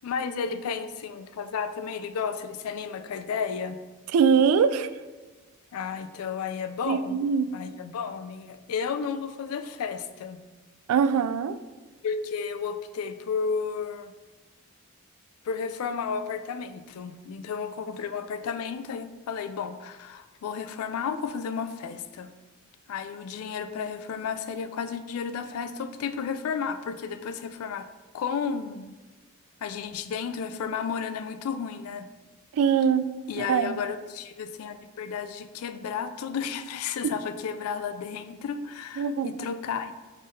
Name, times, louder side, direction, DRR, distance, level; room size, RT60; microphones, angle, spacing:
voice 1, 0.0-3.8 5.7-7.2 7.5-10.4 12.0-14.1 15.4-22.3 22.9-27.9 28.1-29.0 29.6-32.1 33.3-39.9, left 6 dB, 80° left, 11 dB, 0.3 m, -32 dB
voice 2, 4.1-4.9 6.9-7.5 10.9-11.6 32.6-33.1 33.4-33.7 39.0-39.3, right 6 dB, 85° right, 15 dB, 0.3 m, -22 dB
5.1 x 3.7 x 2.7 m, 1.3 s
head